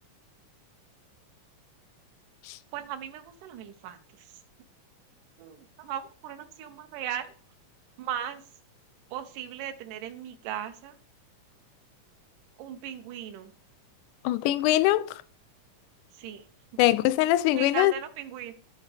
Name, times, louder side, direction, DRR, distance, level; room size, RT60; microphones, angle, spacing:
voice 1, 2.7-4.4 5.4-7.3 8.0-8.4 9.1-11.0 12.6-13.5 16.1-16.5 17.5-18.5, right 10 dB, 85° right, 2.4 m, -37 dB
voice 2, 14.3-15.1 16.8-17.9, left 15 dB, 80° left, 2.0 m, -22 dB
13.0 x 4.6 x 3.3 m
omnidirectional pair, 3.7 m